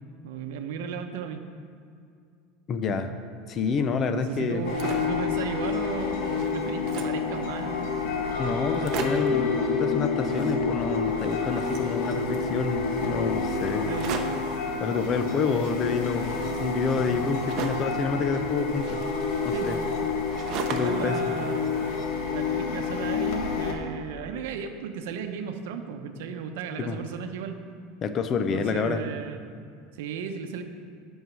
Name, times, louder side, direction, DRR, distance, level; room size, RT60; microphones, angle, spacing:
voice 1, 0.2-1.4 4.1-7.9 13.8-14.3 19.5-19.9 20.7-21.9 22.3-27.6 28.5-29.5 29.9-30.6, right 6 dB, 75° right, 6 dB, 0.8 m, -35 dB
voice 2, 2.7-3.1 3.5-4.6 8.4-13.9 14.8-19.0 19.4-19.8 20.7-21.2 26.8-27.0 28.0-29.1, left 5 dB, 30° left, 9 dB, 0.6 m, -28 dB
sound 1, 4.5-5.2 5.7-5.8 6.0-7.3 7.9-8.0 8.2-8.3 8.6-9.4 10.1-10.9 11.2-12.5 13.9-14.5 15.5-18.0 18.7-21.1 21.4-22.3, right 6 dB, 45° right, 0.7 m, -38 dB
sound 2, 4.6-23.7, left 4 dB, 65° left, 1.4 m, -29 dB
9.0 x 5.5 x 6.1 m, 2.3 s
supercardioid pair, 160°, 0 cm